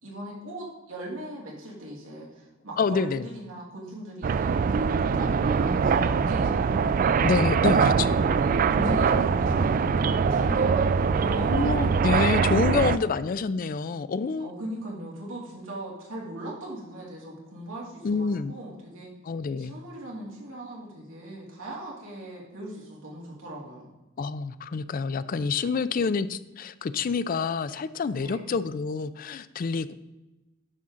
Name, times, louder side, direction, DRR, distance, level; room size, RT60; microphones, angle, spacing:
voice 1, 0.0-7.1 7.9-8.3 8.7-11.6 12.1-12.3 12.5-13.1 14.4-19.1 19.6-23.9 28.1-28.5, right 1 dB, 70° right, -3 dB, 2.5 m, -39 dB
voice 2, 2.8-3.2 7.2-8.2 8.8-9.2 11.5-14.5 18.0-18.5 19.2-19.7 24.2-29.9, left 5 dB, 45° left, 14 dB, 0.3 m, -27 dB
sound 1, 4.2-13.0, right 5 dB, 40° right, 0.3 m, -23 dB
9.9 x 5.7 x 3.7 m, 1.1 s
head